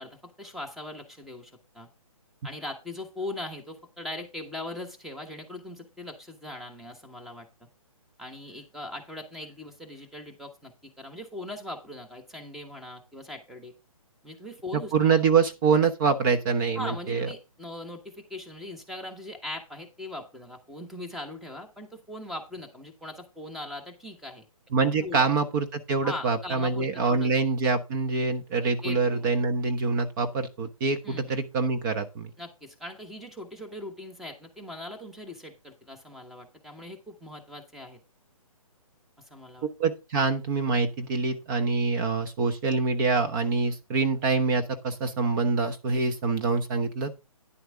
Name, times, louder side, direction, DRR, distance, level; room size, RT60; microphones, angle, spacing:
voice 1, 0.0-1.9 2.4-7.7 8.2-13.7 14.2-14.9 16.7-24.4 25.0-25.2 26.0-27.3 28.8-29.2 31.0-31.4 32.4-38.0 39.2-39.7, left 1 dB, ahead, 4 dB, 1.3 m, -40 dB
voice 2, 14.7-17.3 24.7-32.3 39.8-47.1, right 4 dB, 35° right, 6 dB, 1.1 m, -25 dB
10.5 x 7.9 x 3.6 m, 0.28 s
hypercardioid pair, 145°, 19 cm